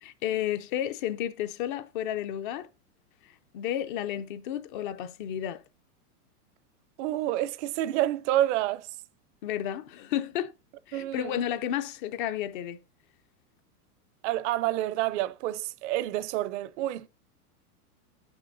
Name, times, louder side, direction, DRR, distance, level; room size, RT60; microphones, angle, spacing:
voice 1, 0.0-2.7 3.5-5.6 9.4-10.5 10.9-12.8, left 11 dB, 35° left, 0.4 m, -32 dB
voice 2, 7.0-8.9 10.9-11.4 14.2-17.1, right 14 dB, 50° right, 0.5 m, -28 dB
17.0 x 6.2 x 2.6 m
hypercardioid pair, 130°, 47 cm